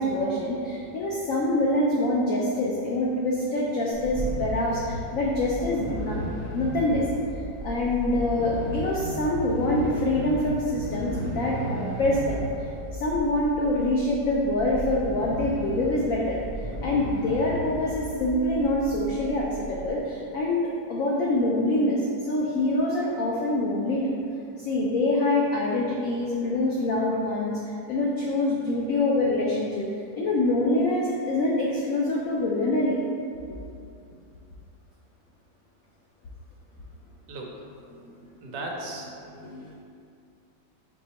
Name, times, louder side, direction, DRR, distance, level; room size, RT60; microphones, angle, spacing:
voice 1, 0.0-6.2 6.5-7.1 7.6-12.4 12.9-24.0 24.6-27.6 27.9-29.9 30.2-33.0 33.5-33.6 37.9-38.3 39.3-39.7, left 1 dB, 85° left, -4 dB, 0.7 m, -25 dB
sound 1, 3.9-19.9, equal, 55° left, 1.4 m, -35 dB
voice 2, 37.3-37.6 38.4-39.1, right 2 dB, 75° right, -1 dB, 1.2 m, -36 dB
4.4 x 4.1 x 2.9 m, 2.5 s
omnidirectional pair, 2.0 m